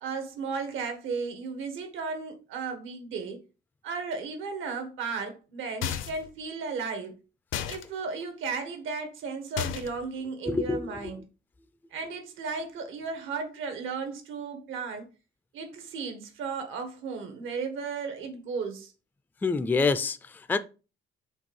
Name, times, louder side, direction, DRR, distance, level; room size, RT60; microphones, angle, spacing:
voice 1, 0.0-3.4 3.8-7.1 7.7-11.2 11.9-15.1 15.5-18.9, right 4 dB, 80° right, 1.6 m, -35 dB
sound 1, 5.8-6.3 7.5-7.8 9.6-10.1, left 10 dB, 85° left, 0.7 m, -32 dB
voice 2, 10.5-11.0 19.4-20.6, left 4 dB, 10° left, 0.3 m, -27 dB
5.2 x 3.4 x 5.4 m
cardioid pair, 155°, 20 cm